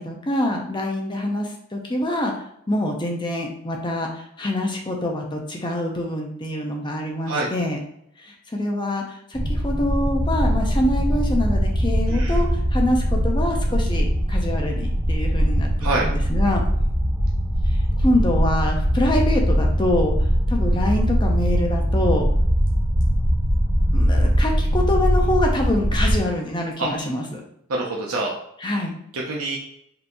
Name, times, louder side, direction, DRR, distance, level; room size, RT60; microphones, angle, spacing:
voice 1, 0.0-2.3 2.7-7.8 8.2-16.6 17.7-20.1 20.5-22.2 23.9-27.4 28.6-28.9, left 1 dB, 20° left, 1 dB, 0.6 m, -25 dB
sound 1, 9.3-26.2, equal, 15° right, 0.7 m, -21 dB
voice 2, 12.1-12.4 15.8-16.1 26.8-26.9 27.7-28.3 29.1-29.6, right 2 dB, 80° right, -2 dB, 0.7 m, -25 dB
5.3 x 3.0 x 2.7 m, 0.72 s
head